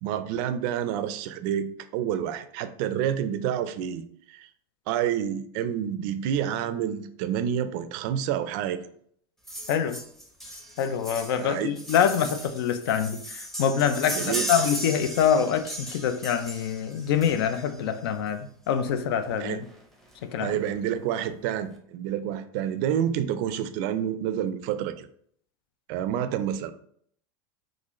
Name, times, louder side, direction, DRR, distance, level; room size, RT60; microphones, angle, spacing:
voice 1, 0.0-4.5 4.9-8.8 11.4-11.7 14.1-14.5 19.4-19.6 20.4-25.1 25.9-26.7, right 9 dB, 55° right, 0.3 m, -28 dB
sound 1, 9.5-17.8 18.9-19.0 19.3-19.4 19.6-19.8 20.1-20.7 21.2-21.3, equal, ahead, 0.5 m, -36 dB
voice 2, 9.7-10.0 10.8-19.7 20.2-20.6, left 8 dB, 90° left, 0.4 m, -25 dB
3.8 x 2.4 x 3.0 m
supercardioid pair, 150°, 12 cm